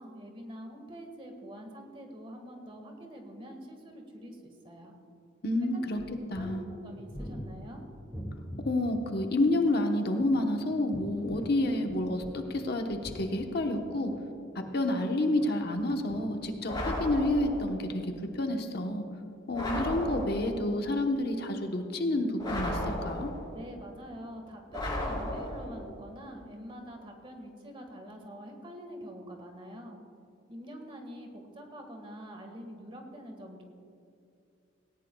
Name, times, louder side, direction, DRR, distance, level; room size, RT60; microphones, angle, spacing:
voice 1, 0.0-4.9 5.7-5.8 6.4-7.8 23.5-30.0 30.5-33.6, equal, 30° right, 3 dB, 1.7 m, -45 dB
voice 2, 5.4-6.0 6.3-6.6 8.6-14.1 14.5-19.1 19.5-23.3, left 1 dB, 55° left, 4 dB, 1.0 m, -29 dB
sound 1, 6.0-8.7 10.0-12.6 12.9-15.0 15.5-17.0 17.4-17.5, equal, 10° right, 1.8 m, -44 dB
sound 2, 16.7-17.7 19.5-20.6 22.4-23.6 24.7-25.8, left 1 dB, 25° left, 3.9 m, -34 dB
18.5 x 18.0 x 2.3 m, 2.6 s
head